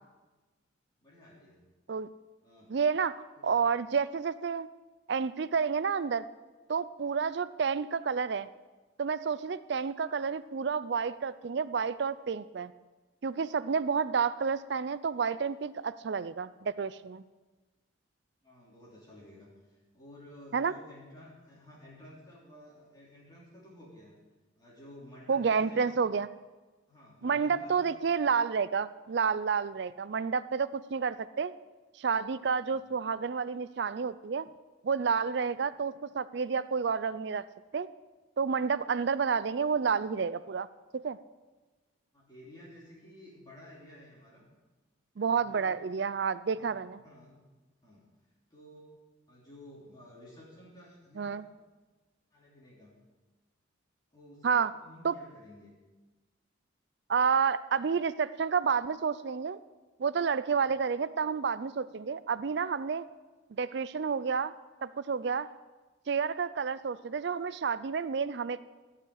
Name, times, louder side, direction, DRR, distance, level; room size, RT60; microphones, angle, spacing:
voice 1, 1.0-1.6 2.4-2.7 3.4-3.7 18.4-24.1 24.6-26.1 26.9-28.0 32.6-33.0 42.1-44.4 45.2-45.9 46.5-46.7 47.0-47.4 47.8-48.1 48.5-48.9 49.3-51.5 52.3-53.0 54.1-55.7, left 1 dB, 20° left, -6 dB, 3.1 m, -53 dB
voice 2, 2.7-3.1 3.4-4.7 5.1-6.3 6.7-8.5 9.0-12.7 13.2-17.2 20.5-20.7 25.3-26.3 27.2-31.5 32.0-34.5 34.8-37.4 37.7-37.9 38.4-40.7 40.9-41.2 45.2-47.0 51.2-51.4 54.4-54.7 55.0-55.1 57.1-59.6 60.0-63.0 63.5-64.5 64.8-65.5 66.1-68.6, right 6 dB, 60° right, 16 dB, 0.4 m, -30 dB
16.5 x 5.7 x 9.5 m, 1.2 s
head